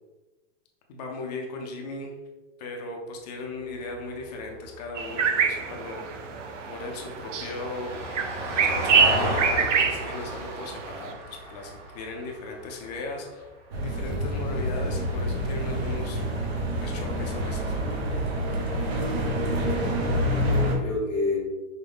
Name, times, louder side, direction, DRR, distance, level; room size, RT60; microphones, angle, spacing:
voice 1, 0.9-2.1 2.6-6.2 6.7-8.0 8.6-13.5 13.8-16.3 16.8-17.8, left 2 dB, 35° left, 1 dB, 0.6 m, -37 dB
Vehicle, 3.7-14.1 16.4-16.5, right 1 dB, 25° right, 0.8 m, -35 dB
sound 1, 4.9-11.1, right 6 dB, 75° right, 0.6 m, -26 dB
sound 2, 13.7-20.8, equal, 55° right, 1.1 m, -27 dB
voice 2, 19.9-21.4, left 2 dB, 5° right, -14 dB, 0.4 m, -30 dB
5.5 x 2.2 x 3.4 m, 1.2 s
hypercardioid pair, 160°, 37 cm